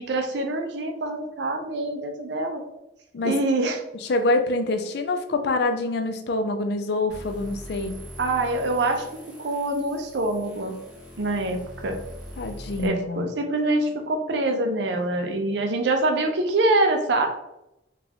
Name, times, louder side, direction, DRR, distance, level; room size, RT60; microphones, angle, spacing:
voice 1, 0.0-2.6 3.2-3.8 8.2-9.1 9.4-10.7 11.2-12.0 12.8-17.3, right 2 dB, 70° right, 4 dB, 0.5 m, -25 dB
voice 2, 4.0-8.0 12.4-13.3, left 2 dB, 60° left, 7 dB, 0.4 m, -25 dB
sound 1, 7.1-12.9, equal, 5° right, 1.2 m, -42 dB
4.0 x 2.4 x 2.8 m, 0.87 s
head